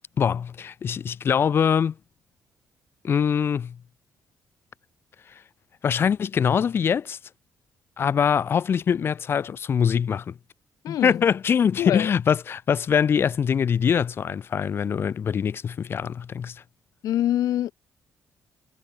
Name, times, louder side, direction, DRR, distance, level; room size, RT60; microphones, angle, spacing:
voice 1, 0.2-2.0 3.0-3.8 5.3-5.4 5.8-7.2 8.0-10.4 10.9-16.6, left 7 dB, 40° left, 7.1 m, -23 dB
voice 2, 10.8-11.2 11.8-12.1 17.0-17.7, left 12 dB, 80° left, 6.1 m, -25 dB
cardioid pair, 165°, 6 cm